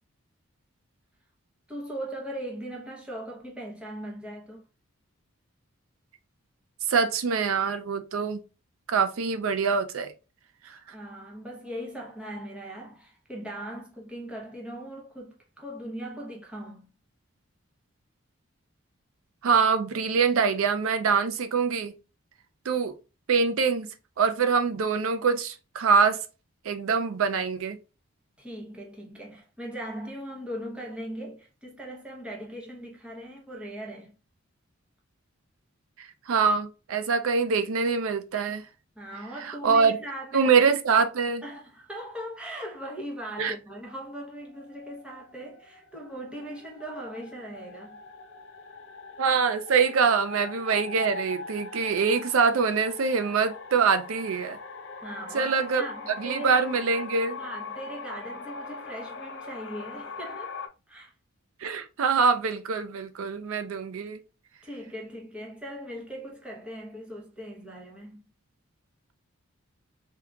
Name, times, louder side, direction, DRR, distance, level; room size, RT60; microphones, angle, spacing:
voice 1, 1.7-4.6 10.9-16.9 28.4-34.1 39.0-40.5 41.4-48.0 55.0-56.6 57.4-60.6 60.9-61.1 64.6-68.2, equal, 5° right, 0.8 m, -39 dB
voice 2, 6.9-8.4 8.9-10.1 10.6-10.8 19.4-21.9 22.7-22.9 23.3-23.9 24.2-26.2 26.6-27.8 36.0-38.6 39.4-40.0 40.3-41.4 43.4-43.5 49.2-54.6 55.3-57.4 61.6-64.2, right 5 dB, 75° right, 0.4 m, -24 dB
sound 1, 44.4-60.7, left 4 dB, 55° left, 0.5 m, -41 dB
3.5 x 2.8 x 2.3 m
head